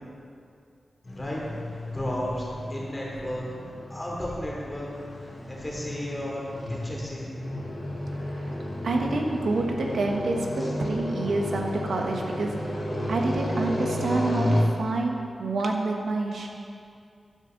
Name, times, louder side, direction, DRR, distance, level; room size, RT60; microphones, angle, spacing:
sound 1, 1.0-14.6, left 1 dB, 40° left, 2.7 m, -32 dB
voice 1, 1.1-1.4 1.7-2.4 2.7-4.9 5.5-7.3 10.5-10.7, left 1 dB, 15° left, -4 dB, 2.8 m, -34 dB
voice 2, 8.8-12.6 13.1-16.5, right 3 dB, 75° right, 1 dB, 1.2 m, -28 dB
12.0 x 12.0 x 3.9 m, 2.4 s
wide cardioid pair, 160°, 0 cm